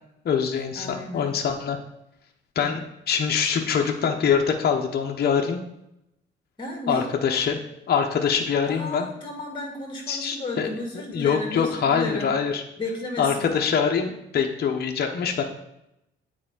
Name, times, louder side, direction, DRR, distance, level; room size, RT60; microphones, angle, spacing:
voice 1, 0.2-1.8 2.6-5.6 6.9-7.6 7.9-9.1 10.1-10.7 11.1-12.6 13.2-15.4, left 7 dB, 55° left, 3 dB, 0.9 m, -24 dB
voice 2, 0.8-1.4 2.6-2.9 6.6-7.1 8.7-12.4 12.8-13.5, left 2 dB, 25° left, -1 dB, 2.2 m, -33 dB
8.6 x 4.5 x 3.8 m, 0.84 s
cardioid pair, 90°, 20 cm